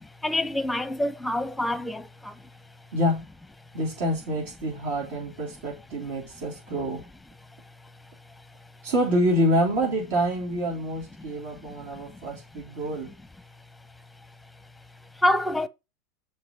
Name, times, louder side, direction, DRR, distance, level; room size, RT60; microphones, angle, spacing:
voice 1, 0.2-2.0 15.2-15.7, left 1 dB, 5° left, 0.8 m, -25 dB
voice 2, 2.9-3.3 3.7-7.0 8.8-13.1, equal, 65° right, 3.4 m, -27 dB
7.0 x 4.5 x 6.0 m
hypercardioid pair, 90°, 0 cm